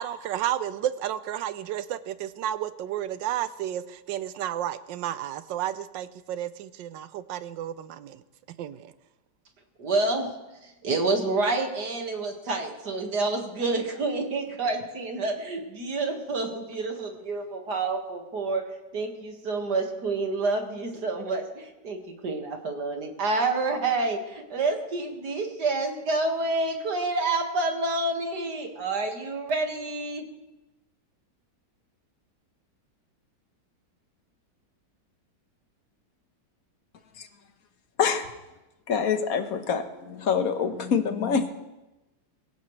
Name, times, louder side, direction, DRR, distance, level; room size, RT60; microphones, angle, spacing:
voice 1, 0.0-8.2 8.6-8.9, right 11 dB, 90° right, 14 dB, 1.4 m, -32 dB
voice 2, 9.8-10.3 10.6-18.6 18.9-30.2, right 3 dB, 65° right, 3 dB, 2.4 m, -28 dB
voice 3, 38.9-41.5, left 6 dB, 55° left, 8 dB, 1.5 m, -25 dB
23.0 x 16.0 x 3.2 m, 1.0 s
omnidirectional pair, 1.9 m